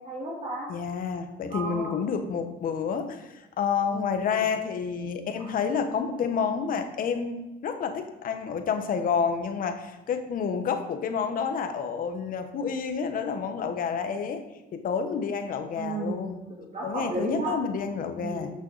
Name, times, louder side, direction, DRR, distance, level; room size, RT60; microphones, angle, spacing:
voice 1, 0.0-0.7 1.5-2.0 3.9-4.4 5.4-5.6 15.8-17.5 18.2-18.5, right 2 dB, 40° right, -3 dB, 2.1 m, -34 dB
voice 2, 0.7-14.4 14.7-16.4 16.8-18.5, left 6 dB, 55° left, 7 dB, 1.2 m, -29 dB
12.5 x 6.2 x 4.1 m, 1.0 s
cardioid pair, 110°, 17 cm